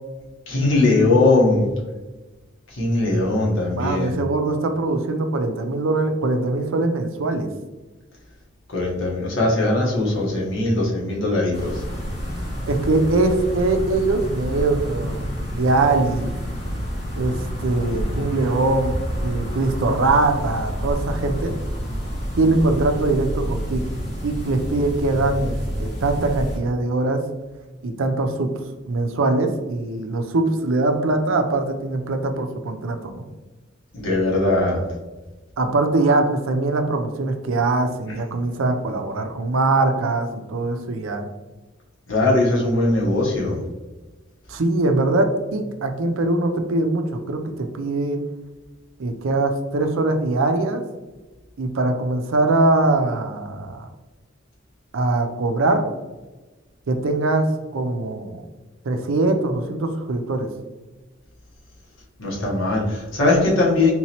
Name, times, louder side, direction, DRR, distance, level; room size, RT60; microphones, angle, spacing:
voice 1, 0.5-1.7 2.7-4.2 8.7-11.7 33.9-34.8 42.1-43.6 62.2-63.9, left 2 dB, 75° left, -3 dB, 1.1 m, -20 dB
voice 2, 3.7-7.5 12.7-15.2 15.5-16.3 17.2-21.6 22.4-23.8 24.2-27.2 27.8-28.5 28.9-33.2 35.6-41.2 44.5-48.2 49.0-50.8 51.6-53.9 54.9-55.8 56.9-57.5 57.7-58.4 58.8-60.5, right 2 dB, 75° right, 6 dB, 0.5 m, -22 dB
sound 1, 11.5-26.6, equal, 35° left, 1.5 m, -28 dB
3.8 x 3.0 x 2.8 m, 1.2 s
head